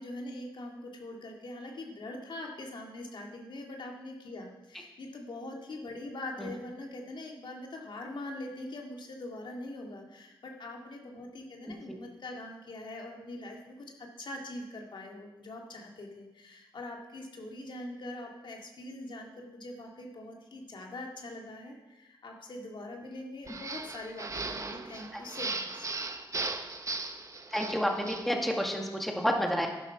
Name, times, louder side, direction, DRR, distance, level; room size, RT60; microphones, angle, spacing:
voice 1, 0.0-25.9, left 1 dB, 65° left, 1 dB, 2.2 m, -43 dB
voice 2, 11.6-12.0 27.5-29.7, equal, ahead, 2 dB, 1.9 m, -30 dB
sound 1, 23.5-28.3, right 3 dB, 35° right, 1.0 m, -37 dB
11.5 x 10.5 x 5.9 m, 1.0 s
cardioid pair, 85°, 9 cm